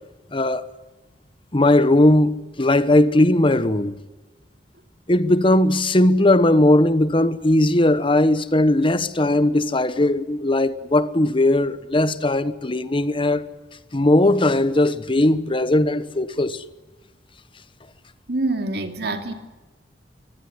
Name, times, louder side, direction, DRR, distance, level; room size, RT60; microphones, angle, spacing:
voice 1, 0.3-0.6 1.5-3.9 5.1-13.5 13.9-16.6, left 1 dB, 30° left, 1.1 m, -18 dB
voice 2, 18.3-19.3, right 2 dB, 65° right, 2.8 m, -25 dB
23.5 x 19.5 x 9.8 m
head